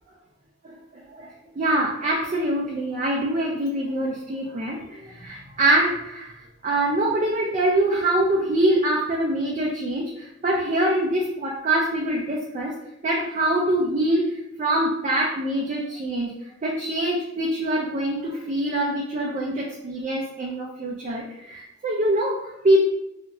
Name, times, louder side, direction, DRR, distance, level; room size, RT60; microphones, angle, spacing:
voice 1, 0.6-1.3 1.5-6.3 6.6-12.8 13.0-16.3 16.6-22.8, right 1 dB, 40° right, -3 dB, 0.4 m, -24 dB
2.9 x 2.4 x 2.6 m, 0.85 s
head